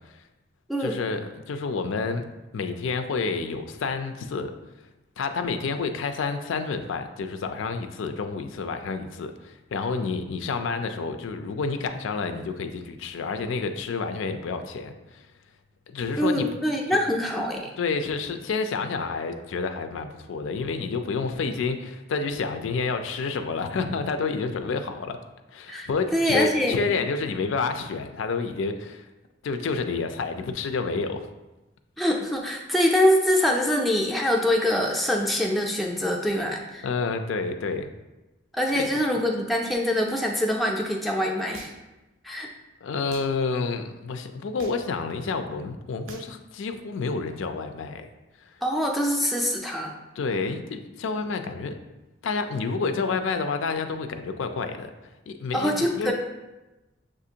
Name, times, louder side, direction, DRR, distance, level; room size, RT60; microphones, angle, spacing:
voice 1, 0.8-2.3 2.5-4.5 5.2-15.2 15.9-16.5 17.8-25.2 25.5-29.1 29.4-31.3 36.8-37.9 38.7-38.9 42.8-48.1 48.4-48.5 50.2-51.8 52.2-54.9 55.3-56.1, left 4 dB, 80° left, 8 dB, 0.4 m, -29 dB
voice 2, 16.2-17.7 25.7-26.8 32.0-36.9 38.5-41.7 42.2-42.5 48.6-49.9 55.5-56.1, left 1 dB, ahead, -1 dB, 0.3 m, -24 dB
sound 1, 41.5-42.0 43.1-43.3 44.6-45.0 46.1-46.4, right 3 dB, 90° right, 0.5 m, -44 dB
6.5 x 2.5 x 2.8 m, 1.0 s
head